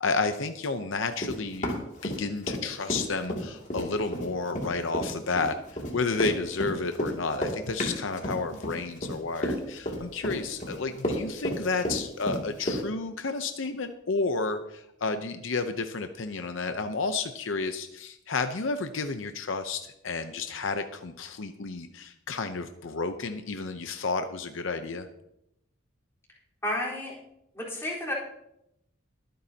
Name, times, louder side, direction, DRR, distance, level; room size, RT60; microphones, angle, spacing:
voice 1, 0.0-25.1, left 4 dB, 70° left, 7 dB, 0.7 m, -31 dB
Run, 1.2-2.6 2.9-12.8, equal, 35° left, 2.5 m, -31 dB
voice 2, 26.6-27.1 27.5-28.1, left 1 dB, 15° left, -5 dB, 4.1 m, -31 dB
22.5 x 9.4 x 2.8 m, 0.81 s
head